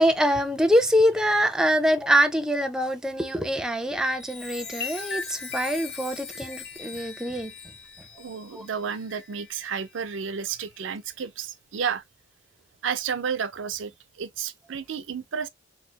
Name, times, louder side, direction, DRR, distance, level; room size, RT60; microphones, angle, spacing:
voice 1, 0.0-7.5 8.5-8.6, equal, 5° right, 0.4 m, -24 dB
Chime, 4.0-9.9 10.5-10.8, left 5 dB, 60° left, 1.0 m, -39 dB
voice 2, 8.2-12.0 12.8-15.5, right 6 dB, 80° right, 0.5 m, -31 dB
3.1 x 2.7 x 2.8 m
head